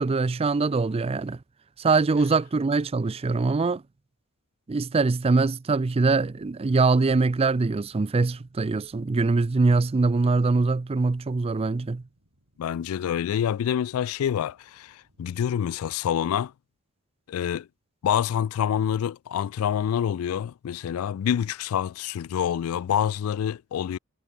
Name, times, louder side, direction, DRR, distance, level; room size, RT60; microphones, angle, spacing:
voice 1, 0.0-1.4 1.8-3.8 4.7-12.0, right 3 dB, 30° right, 0.4 m, -23 dB
sound 1, 5.8-16.3, equal, 85° right, 7.7 m, -67 dB
voice 2, 12.6-16.5 17.3-17.7 18.0-24.0, left 9 dB, 85° left, 0.3 m, -27 dB
head